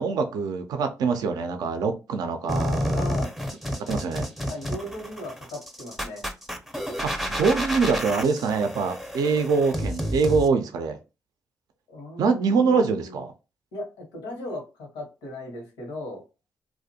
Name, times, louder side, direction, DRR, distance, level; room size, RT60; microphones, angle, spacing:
voice 1, 0.0-3.1 3.9-4.3 7.0-11.0 12.2-13.3, right 5 dB, 75° right, 7 dB, 0.4 m, -24 dB
sound 1, 2.5-10.5, equal, 5° right, 0.5 m, -30 dB
voice 2, 2.9-3.3 4.5-6.2 11.9-13.2 13.7-16.2, left 1 dB, 90° left, 2 dB, 0.8 m, -37 dB
2.4 x 2.1 x 2.7 m, 0.29 s
supercardioid pair, 50°, 7 cm